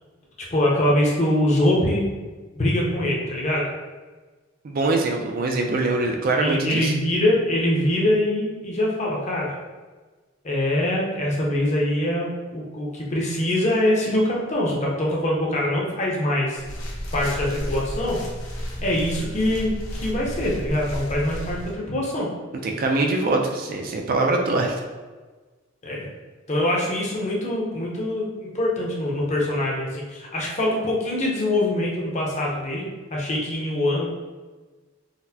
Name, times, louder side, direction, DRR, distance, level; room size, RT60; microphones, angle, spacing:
voice 1, 0.5-2.1 2.5-3.7 6.4-9.5 10.4-16.6 17.1-18.2 18.8-22.3 25.8-26.1 26.5-34.1, left 1 dB, 35° left, -3 dB, 0.6 m, -23 dB
voice 2, 4.6-6.9 22.6-24.8, right 2 dB, 45° right, 2 dB, 0.3 m, -23 dB
sound 1, 16.6-21.7, equal, 85° left, 0.7 m, -32 dB
4.0 x 2.0 x 2.7 m, 1.3 s
head